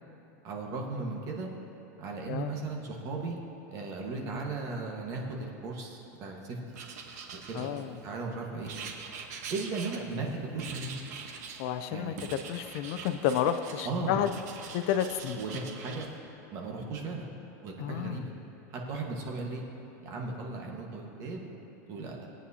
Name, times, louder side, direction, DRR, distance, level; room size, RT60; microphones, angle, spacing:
voice 1, 0.4-1.5 2.0-3.4 3.7-6.6 7.5-8.7 9.5-10.3 10.5-10.9 11.9-12.1 13.8-14.2 15.4-16.1 16.5-17.3 17.6-18.3 18.7-19.6 20.0-21.5 21.9-22.3, right 3 dB, 35° right, 0 dB, 1.4 m, -36 dB
Writing, 6.7-8.1 8.7-10.3 10.6-11.7 12.2-13.9 14.2-16.1, right 6 dB, 75° right, 1.2 m, -43 dB
voice 2, 7.5-8.0 11.6-12.1 12.5-14.3 14.7-15.4 17.8-18.3, left 10 dB, 55° left, 10 dB, 0.5 m, -30 dB
19.0 x 8.8 x 2.8 m, 3.0 s
supercardioid pair, 160°, 9 cm